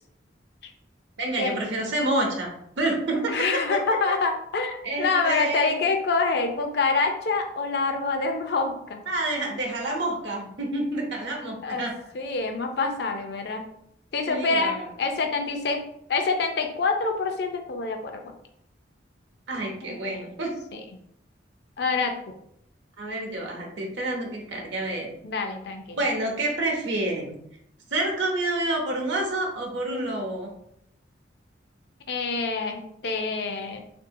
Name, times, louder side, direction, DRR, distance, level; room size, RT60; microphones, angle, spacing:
voice 1, 1.2-2.5 2.8-3.8 4.8-5.9 9.1-11.9 14.3-14.9 19.5-20.5 23.0-25.1 25.9-27.3 27.9-30.5, right 2 dB, 75° right, 0 dB, 0.8 m, -28 dB
voice 2, 3.3-9.0 11.6-11.9 12.1-13.7 14.1-15.8 16.1-18.2 19.9-20.0 20.7-20.8 21.8-22.3 25.2-26.0 32.1-33.8, left 4 dB, 60° left, 5 dB, 0.5 m, -26 dB
3.6 x 2.6 x 2.6 m, 0.73 s
head